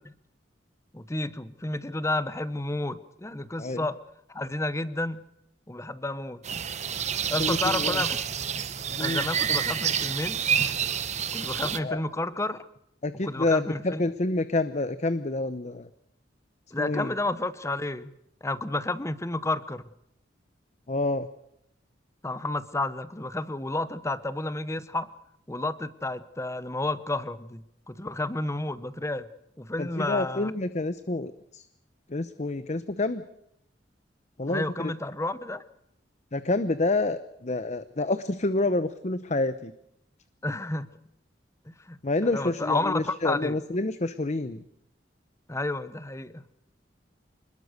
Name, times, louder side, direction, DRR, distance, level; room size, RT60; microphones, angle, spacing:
voice 1, 0.9-4.0 4.3-5.2 5.7-6.4 7.3-8.2 9.0-10.4 11.3-12.7 13.2-14.0 16.7-18.1 18.4-19.8 22.2-25.1 25.5-29.3 29.6-30.5 34.5-35.6 40.4-40.9 41.7-43.6 45.5-46.4, left 2 dB, 15° left, 15 dB, 1.0 m, -31 dB
sound 1, 6.4-11.8, right 7 dB, 40° right, 1.0 m, -28 dB
voice 2, 7.4-8.0 9.0-9.2 11.8-12.0 13.0-15.9 16.8-17.1 20.9-21.3 29.8-31.6 32.1-33.2 34.4-34.9 36.3-39.7 42.0-44.6, left 2 dB, 40° left, 12 dB, 0.8 m, -28 dB
26.5 x 20.5 x 6.6 m, 0.78 s
head